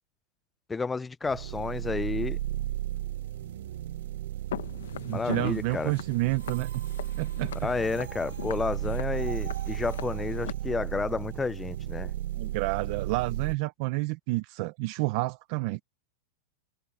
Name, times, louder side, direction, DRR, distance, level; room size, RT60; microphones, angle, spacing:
voice 1, 0.7-2.4 5.1-5.9 7.6-12.1, left 4 dB, 10° left, 0.3 m, -31 dB
sound 1, 1.2-13.5, right 13 dB, 70° right, 0.8 m, -34 dB
Walk footsteps, 4.5-10.5, left 11 dB, 90° left, 0.8 m, -41 dB
voice 2, 5.0-6.8 7.2-7.7 12.3-15.8, right 21 dB, 40° right, 0.7 m, -30 dB
supercardioid pair, 165°, 0 cm